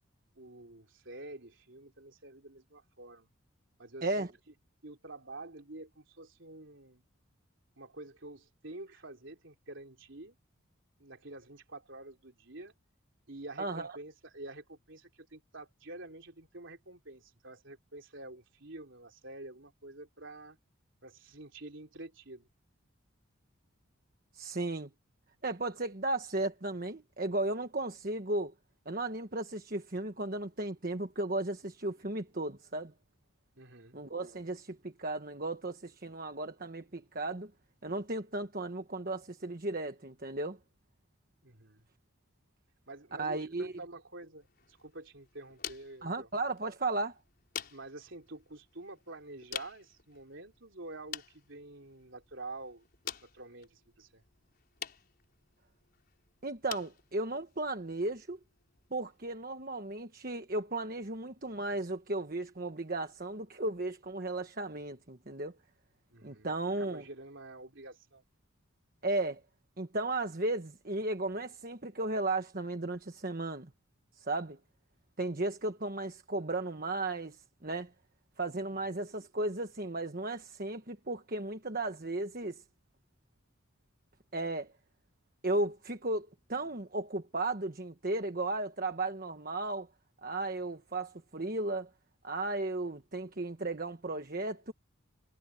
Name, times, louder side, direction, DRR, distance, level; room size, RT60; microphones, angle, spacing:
voice 1, 0.4-3.3 3.8-4.3 4.8-7.0 7.8-10.4 11.0-12.7 13.3-20.6 21.0-22.5 33.6-34.0 41.4-41.9 42.9-46.3 47.7-52.9 53.2-54.2 66.1-66.5 66.8-68.2, right 2 dB, 60° right, 3.7 m, -48 dB
voice 2, 13.6-13.9 24.3-24.9 25.4-28.5 28.8-32.9 33.9-37.5 37.8-40.6 43.2-43.7 46.0-47.2 56.4-58.4 58.9-65.6 66.2-67.0 69.0-69.4 69.8-73.7 74.2-74.6 75.2-77.9 78.4-82.6 84.3-84.7 85.4-89.9 90.2-91.9 92.2-94.7, right 2 dB, 40° right, 1.3 m, -35 dB
sound 1, 44.4-59.4, left 8 dB, 45° left, 5.0 m, -49 dB
head